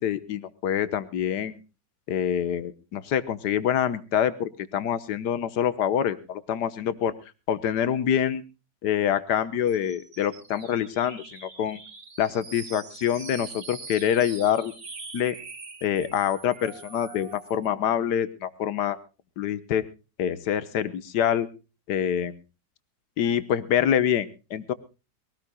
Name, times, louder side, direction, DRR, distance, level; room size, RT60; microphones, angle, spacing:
voice 1, 0.0-1.6 2.1-7.1 7.5-8.4 8.8-11.8 12.2-14.7 15.1-15.3 15.8-19.0 19.4-19.8 20.2-21.5 21.9-22.3 23.2-24.7, left 9 dB, 75° left, 14 dB, 1.6 m, -26 dB
sound 1, 9.7-17.7, right 4 dB, 55° right, 2.6 m, -44 dB
22.5 x 18.0 x 2.2 m, 0.31 s
omnidirectional pair, 1.9 m